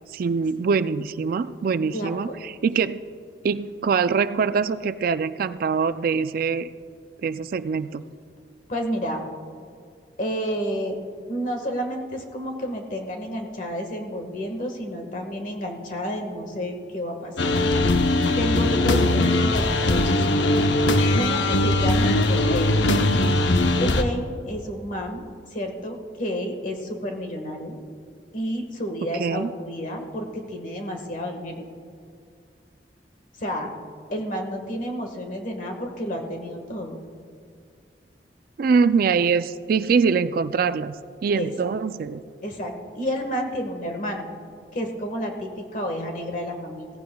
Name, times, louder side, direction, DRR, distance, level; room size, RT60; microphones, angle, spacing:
voice 1, 0.1-3.0 3.4-6.7 7.2-8.0 29.1-29.5 38.6-41.0 41.2-42.2, right 5 dB, 55° right, 13 dB, 0.3 m, -23 dB
voice 2, 1.8-2.4 8.7-9.2 10.2-11.0 11.3-17.5 18.4-20.3 21.1-22.9 23.7-25.2 25.5-27.7 28.3-31.6 33.4-33.7 34.1-37.0 41.3-41.5 42.4-44.3 44.7-46.9, equal, 45° left, 3 dB, 1.5 m, -30 dB
sound 1, 17.4-24.0, left 2 dB, 85° left, 0.7 m, -20 dB
17.0 x 14.5 x 2.3 m, 2.2 s
head